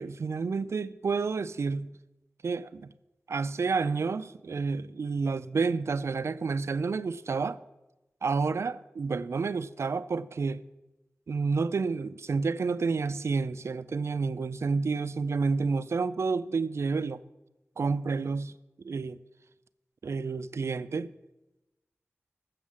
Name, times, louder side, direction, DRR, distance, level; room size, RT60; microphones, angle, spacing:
voice 1, 0.0-1.9 2.4-2.9 3.3-7.6 8.2-10.6 11.3-17.2 17.8-18.5 18.8-19.2 20.0-21.1, right 4 dB, 70° right, 0.3 m, -30 dB
7.3 x 7.1 x 7.4 m
wide cardioid pair, 90°, 5 cm